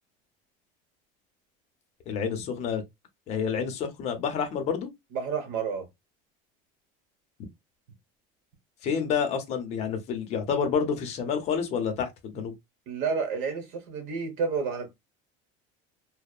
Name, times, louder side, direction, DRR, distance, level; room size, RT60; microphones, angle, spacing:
voice 1, 2.1-2.8 3.3-4.9 8.8-12.5, left 6 dB, 35° left, 0.6 m, -29 dB
voice 2, 5.1-5.9 12.9-14.9, right 5 dB, 65° right, 1.0 m, -30 dB
2.7 x 2.0 x 2.3 m
cardioid pair, 165°, 19 cm